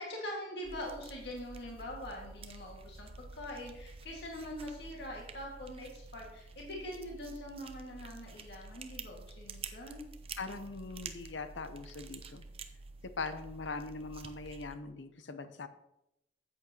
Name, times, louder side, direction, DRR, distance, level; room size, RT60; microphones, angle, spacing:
voice 1, 0.0-10.1, left 1 dB, 65° left, -2 dB, 2.0 m, -43 dB
sound 1, 0.6-14.8, right 4 dB, 30° right, 0.6 m, -49 dB
voice 2, 10.4-12.4 13.2-15.7, left 3 dB, 90° left, 10 dB, 0.8 m, -41 dB
13.0 x 8.4 x 3.0 m, 0.84 s
head